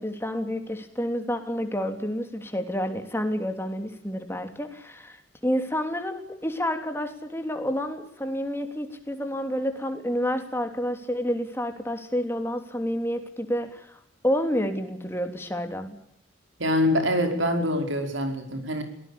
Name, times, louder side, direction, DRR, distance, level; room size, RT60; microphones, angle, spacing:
voice 1, 0.0-5.2 5.4-14.0 14.2-16.0, equal, 10° left, 6 dB, 3.0 m, -29 dB
voice 2, 16.6-18.8, left 1 dB, 85° right, 6 dB, 5.1 m, -24 dB
23.5 x 18.5 x 8.6 m, 0.75 s
head